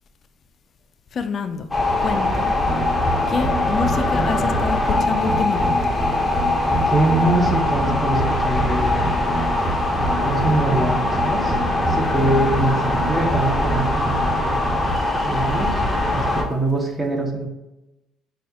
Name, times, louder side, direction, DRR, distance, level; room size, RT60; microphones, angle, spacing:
voice 1, 1.1-1.7 2.0-2.6 3.3-5.8, left 5 dB, 45° left, 9 dB, 0.3 m, -26 dB
sound 1, 1.7-16.4, left 1 dB, 10° left, 0.8 m, -21 dB
voice 2, 6.9-9.7 10.1-11.5 11.9-14.8 15.2-15.8 16.1-17.5, right 2 dB, 15° right, 1 dB, 0.9 m, -24 dB
5.3 x 2.3 x 2.7 m, 0.97 s
supercardioid pair, 85°, 0 cm